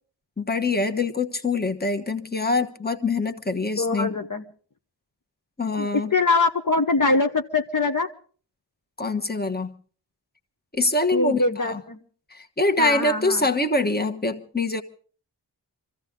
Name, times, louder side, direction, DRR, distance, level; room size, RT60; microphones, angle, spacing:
voice 1, 0.4-4.1 5.6-6.1 9.0-9.7 10.7-11.8 12.3-14.8, left 3 dB, 25° left, 1.3 m, -24 dB
voice 2, 3.8-4.4 5.8-8.1 11.1-12.0 12.8-13.5, left 3 dB, 50° left, 1.0 m, -23 dB
25.0 x 15.5 x 3.8 m
wide cardioid pair, 55°, 41 cm